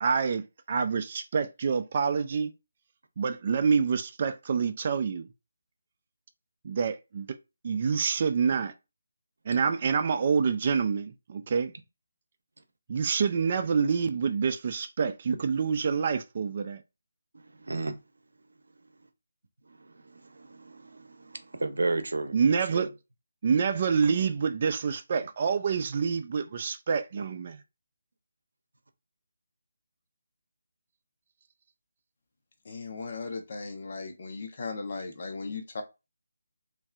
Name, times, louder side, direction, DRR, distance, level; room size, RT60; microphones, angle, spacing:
voice 1, 0.0-2.5 3.2-5.3 6.6-7.3 7.6-8.7 9.5-11.7 12.9-16.8 22.3-22.9 23.4-27.6, right 6 dB, 35° right, 0.4 m, -27 dB
voice 2, 17.3-18.0 19.7-22.9 27.2-27.3, right 3 dB, 85° right, 0.7 m, -34 dB
voice 3, 32.6-35.8, left 4 dB, 45° left, 0.8 m, -37 dB
3.2 x 2.6 x 2.4 m
figure-of-eight pair, 165°, 0 cm